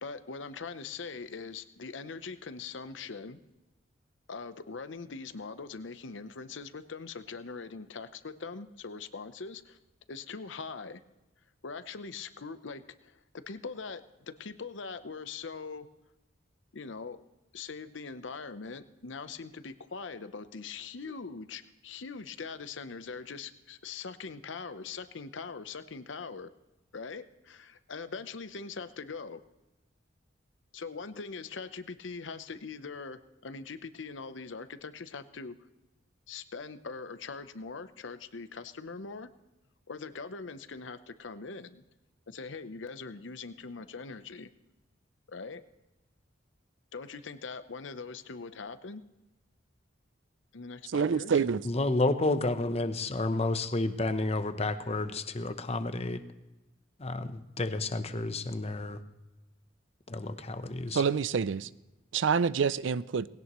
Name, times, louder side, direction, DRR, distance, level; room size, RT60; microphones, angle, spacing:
voice 1, 0.0-3.4 4.3-9.8 10.1-11.0 11.6-15.9 16.7-17.2 17.5-26.5 26.9-29.4 30.7-35.6 36.3-39.3 39.9-41.8 42.3-44.5 45.3-45.6 46.9-49.0 50.5-51.4, left 4 dB, 75° left, 0.8 m, -42 dB
voice 2, 50.9-51.6 60.9-61.7 62.1-63.3, right 6 dB, 70° right, 0.4 m, -27 dB
voice 3, 51.6-56.2 57.0-59.0 60.1-61.0, left 2 dB, 35° left, 0.8 m, -30 dB
19.5 x 17.5 x 3.1 m
head